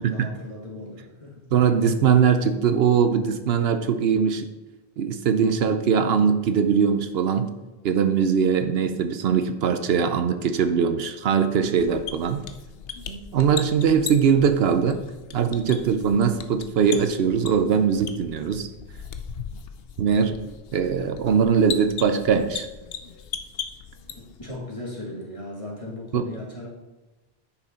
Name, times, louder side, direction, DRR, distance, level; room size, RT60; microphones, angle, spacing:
voice 1, 0.0-1.4 24.4-26.7, left 1 dB, 30° left, -3 dB, 2.1 m, -37 dB
voice 2, 1.5-4.5 5.0-7.5 7.8-12.4 13.1-15.0 15.3-18.7 20.0-20.4 20.7-22.7 26.1-26.3, right 6 dB, 75° right, 9 dB, 0.9 m, -21 dB
sound 1, 11.8-24.6, left 7 dB, 70° left, 0.9 m, -38 dB
9.9 x 6.0 x 4.3 m, 1.1 s
omnidirectional pair, 1.0 m